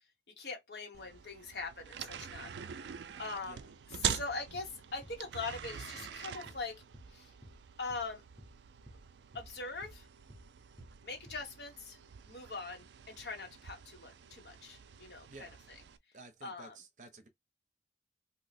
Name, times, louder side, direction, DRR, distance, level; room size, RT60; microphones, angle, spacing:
voice 1, 0.4-2.5 3.2-3.6 3.9-6.8 7.1-7.3 7.8-8.2 9.3-10.1 11.0-12.0 12.3-15.5 16.4-16.8, left 3 dB, 70° left, 1.1 m, -42 dB
sound 1, 0.9-16.0, right 8 dB, 85° right, 0.4 m, -44 dB
sound 2, 4.5-4.7 5.0-5.2 5.5-5.7 6.0-6.1 6.5-6.6 6.9-7.1 7.4-7.6 7.9-8.1 8.4-8.5 8.8-9.0 9.3-9.5 9.8-10.0 10.3-10.5 10.8-10.9 11.3-11.4, equal, ahead, 0.8 m, -53 dB
voice 2, 16.1-17.3, right 3 dB, 45° right, 0.6 m, -53 dB
2.9 x 2.1 x 4.0 m
head